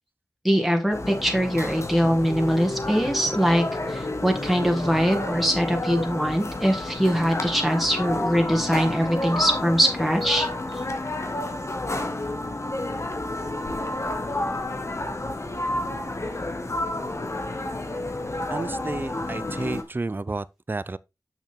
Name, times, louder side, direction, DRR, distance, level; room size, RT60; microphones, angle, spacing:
voice 1, 0.4-10.5 10.7-10.8, equal, ahead, 1.9 m, -22 dB
sound 1, 0.9-19.8, left 2 dB, 50° left, 1.4 m, -30 dB
voice 2, 18.5-21.0, right 3 dB, 35° right, 0.4 m, -31 dB
6.4 x 6.3 x 3.5 m
wide cardioid pair, 45°, 6 cm